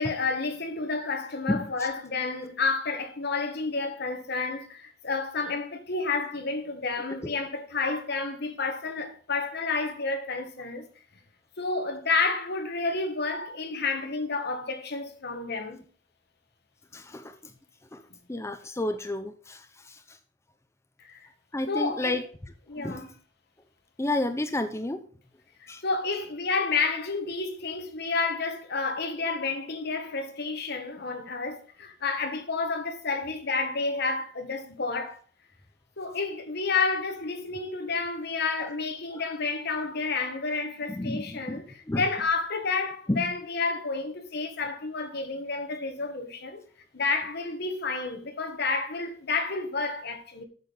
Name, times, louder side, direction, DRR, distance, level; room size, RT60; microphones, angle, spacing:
voice 1, 0.0-10.9 11.6-15.8 21.0-21.3 21.7-22.2 22.7-23.1 25.6-35.2 36.0-46.6 46.9-50.4, left 4 dB, 60° left, 1.7 m, -30 dB
voice 2, 16.9-17.3 17.9-18.0 18.3-20.0 21.5-22.2 22.8-23.0 24.0-25.0 25.7-25.8 38.6-38.7 40.9-41.6 41.9-42.0 43.1-43.2, left 1 dB, 15° left, 0.6 m, -30 dB
8.1 x 6.8 x 5.4 m
head